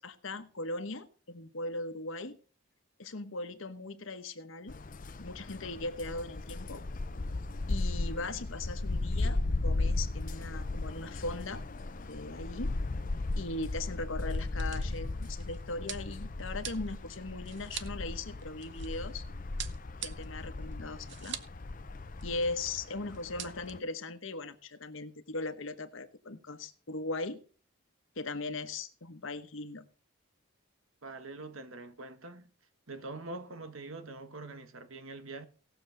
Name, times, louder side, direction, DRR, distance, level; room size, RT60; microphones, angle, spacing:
voice 1, 0.0-2.4 3.0-4.8 5.2-6.8 7.7-11.6 12.1-12.7 13.4-19.2 20.0-21.4 22.2-27.4 28.1-29.8, left 2 dB, 65° left, 1.2 m, -39 dB
sound 1, 4.7-23.8, left 2 dB, 40° left, 0.6 m, -36 dB
sound 2, 12.7-12.8 13.1-13.2 14.0-19.1 19.6-21.6 21.9-22.0 22.2-22.8 23.1-23.7, right 10 dB, 55° right, 0.8 m, -45 dB
voice 2, 31.0-32.5 32.9-35.5, right 2 dB, 75° right, 1.3 m, -44 dB
18.5 x 7.0 x 3.9 m
head